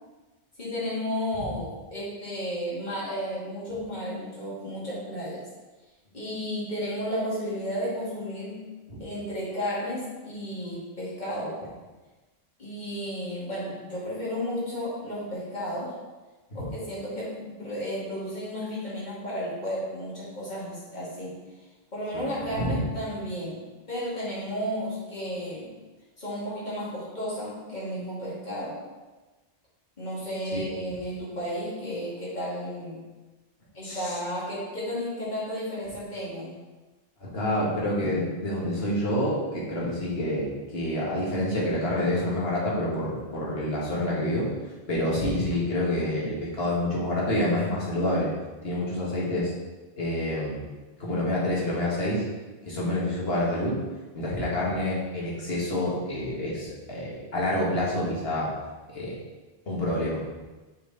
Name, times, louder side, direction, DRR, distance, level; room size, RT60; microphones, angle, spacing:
voice 1, 0.6-5.5 6.1-8.7 9.0-11.7 12.6-15.9 16.5-21.4 21.9-25.8 26.2-28.8 30.0-33.1 33.7-36.6, equal, 45° left, -8 dB, 2.4 m, -33 dB
voice 2, 33.8-34.2 37.2-44.5 44.9-48.3 48.6-49.5 50.0-50.6 51.0-52.3 52.7-53.8 54.1-58.5 58.9-59.2 59.7-60.2, left 1 dB, 75° left, -5 dB, 1.9 m, -27 dB
6.6 x 4.5 x 4.0 m, 1.2 s
omnidirectional pair, 1.0 m